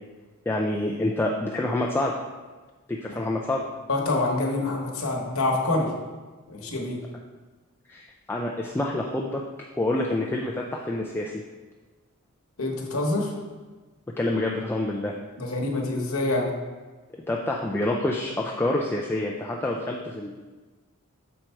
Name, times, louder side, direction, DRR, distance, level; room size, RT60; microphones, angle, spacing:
voice 1, 0.5-2.1 2.9-3.6 7.9-9.4 9.8-11.4 14.2-15.1 17.3-20.4, left 1 dB, 10° left, -1 dB, 0.3 m, -27 dB
voice 2, 3.9-5.9 6.5-7.0 12.6-13.3 15.4-16.5, left 2 dB, 65° left, 0 dB, 1.1 m, -26 dB
6.3 x 4.5 x 4.4 m, 1.3 s
head